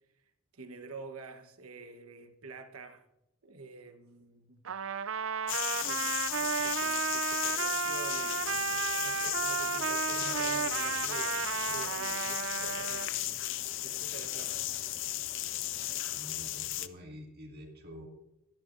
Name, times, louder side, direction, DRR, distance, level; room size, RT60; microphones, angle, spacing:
voice 1, 0.5-3.0 3.4-4.6 5.8-11.4 11.7-13.4 13.8-14.7, right 3 dB, 80° right, 1.2 m, -48 dB
Trumpet, 4.6-13.1, right 7 dB, 65° right, 0.5 m, -33 dB
sound 1, 5.5-16.9, left 14 dB, 60° left, 0.5 m, -35 dB
sound 2, 8.2-16.6, equal, 5° left, 1.0 m, -55 dB
voice 2, 16.1-18.1, equal, 45° right, 2.3 m, -48 dB
24.0 x 10.5 x 2.6 m
head